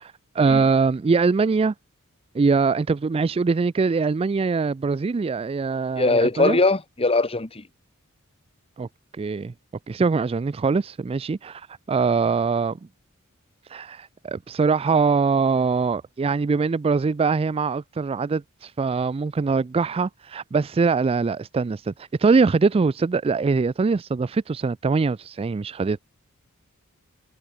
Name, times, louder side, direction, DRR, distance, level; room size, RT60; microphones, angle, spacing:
voice 1, 0.0-1.7 2.3-6.6 8.8-8.9 9.2-9.5 9.9-12.8 13.7-26.0, right 4 dB, 25° right, 0.3 m, -22 dB
voice 2, 6.0-7.7, left 3 dB, 25° left, 1.6 m, -21 dB
head